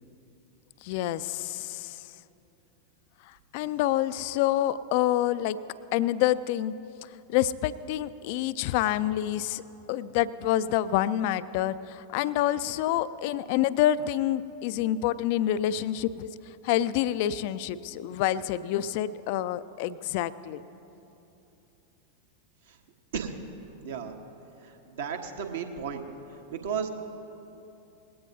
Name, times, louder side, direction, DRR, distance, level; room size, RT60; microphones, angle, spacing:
voice 1, 0.8-2.1 3.3-5.6 5.9-6.7 7.3-9.6 9.9-16.3 16.6-20.6, left 12 dB, 50° left, 16 dB, 0.4 m, -27 dB
voice 2, 23.8-24.2 24.6-26.0 26.5-26.9, right 7 dB, 60° right, 4 dB, 1.2 m, -34 dB
20.0 x 16.5 x 2.7 m, 2.9 s
figure-of-eight pair, 90°, 0 cm